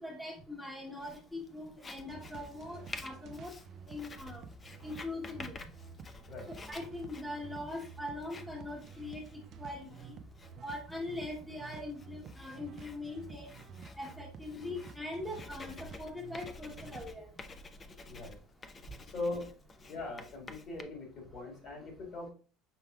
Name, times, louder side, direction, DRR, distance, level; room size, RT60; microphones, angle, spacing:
voice 1, 0.0-3.5 3.9-4.4 4.8-5.5 6.7-9.2 9.6-10.2 10.6-13.5 14.0-15.7 16.0-17.2, left 2 dB, 5° left, -1 dB, 1.0 m, -41 dB
Writing, 1.0-20.8, left 3 dB, 25° left, 0.5 m, -51 dB
sound 1, 2.1-17.1, right 5 dB, 45° right, 0.4 m, -51 dB
voice 2, 19.0-19.5 19.9-22.3, left 2 dB, 50° left, 2 dB, 1.8 m, -40 dB
5.6 x 3.3 x 2.3 m, 0.38 s
supercardioid pair, 105°, 0 cm